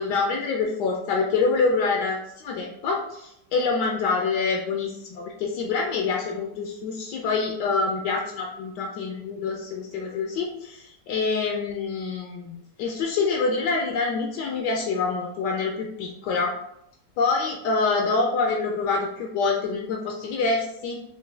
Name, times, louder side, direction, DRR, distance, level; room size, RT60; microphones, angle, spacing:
voice 1, 0.0-16.5 17.2-21.0, left 4 dB, 80° left, 0 dB, 1.2 m, -26 dB
5.7 x 2.2 x 3.2 m, 0.80 s
omnidirectional pair, 1.9 m